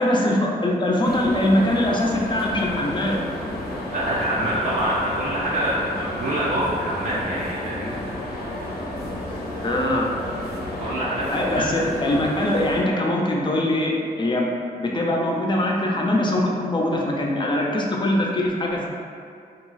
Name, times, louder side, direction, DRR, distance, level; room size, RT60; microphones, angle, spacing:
voice 1, 0.0-3.2 9.6-10.1 11.3-14.5 14.8-18.9, left 1 dB, 30° left, -1 dB, 0.4 m, -22 dB
sound 1, 1.0-12.8, left 1 dB, 80° left, 0.5 m, -31 dB
voice 2, 3.9-8.0 10.5-11.8, right 1 dB, 55° right, -7 dB, 0.5 m, -26 dB
2.3 x 2.0 x 3.9 m, 2.4 s
cardioid pair, 85°, 16 cm